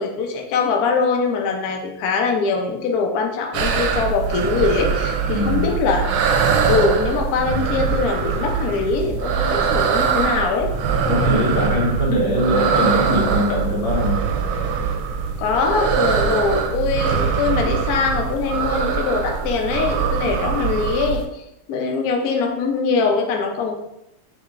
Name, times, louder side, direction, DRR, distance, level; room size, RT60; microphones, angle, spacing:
voice 1, 0.0-6.1 6.6-10.7 15.4-23.8, left 4 dB, 90° left, 2 dB, 0.8 m, -22 dB
sound 1, 3.5-21.3, right 6 dB, 75° right, 1.3 m, -22 dB
voice 2, 5.3-5.7 11.0-14.2, equal, 70° left, -2 dB, 1.7 m, -21 dB
5.8 x 3.1 x 2.4 m, 0.83 s
omnidirectional pair, 2.4 m